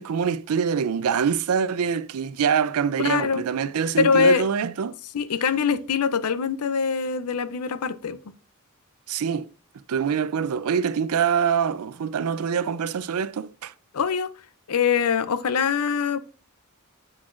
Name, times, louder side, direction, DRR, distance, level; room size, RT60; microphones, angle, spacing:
voice 1, 0.0-5.0 9.1-9.5 9.9-13.7, right 7 dB, 75° right, 0.4 m, -25 dB
voice 2, 3.0-3.4 4.0-4.4 5.1-8.2 13.9-14.3 14.7-16.2, left 6 dB, 85° left, 0.5 m, -23 dB
7.8 x 6.1 x 2.5 m
head